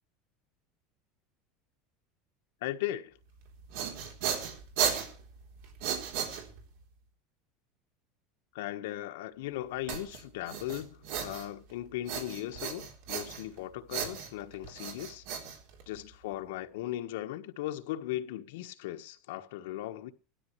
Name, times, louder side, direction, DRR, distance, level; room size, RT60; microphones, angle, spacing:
voice 1, 2.6-3.2 8.5-15.2 15.9-20.1, left 14 dB, 80° left, 1.3 m, -38 dB
sound 1, 3.4-6.8 9.9-11.7 12.1-13.6 13.9-16.2, right 8 dB, 65° right, 3.6 m, -35 dB
18.0 x 13.0 x 3.2 m
supercardioid pair, 170°, 0 cm